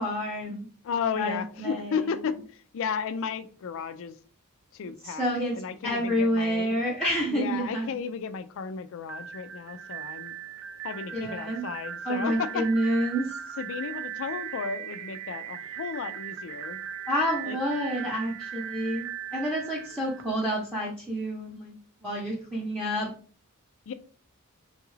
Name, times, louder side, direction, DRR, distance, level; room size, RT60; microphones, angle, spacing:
voice 1, 0.0-0.7 1.2-2.0 5.0-5.5 5.8-7.9 11.1-11.7 12.0-13.4 17.1-21.8 22.0-23.1, equal, 5° left, -7 dB, 0.7 m, -29 dB
voice 2, 0.8-4.2 4.7-5.2 5.5-6.7 7.3-10.4 10.8-12.6 13.6-16.8 17.5-17.6 23.9-24.0, left 6 dB, 60° left, 11 dB, 0.4 m, -33 dB
sound 1, 9.0-20.9, right 9 dB, 60° right, 0.4 m, -38 dB
3.8 x 2.3 x 3.1 m, 0.41 s
head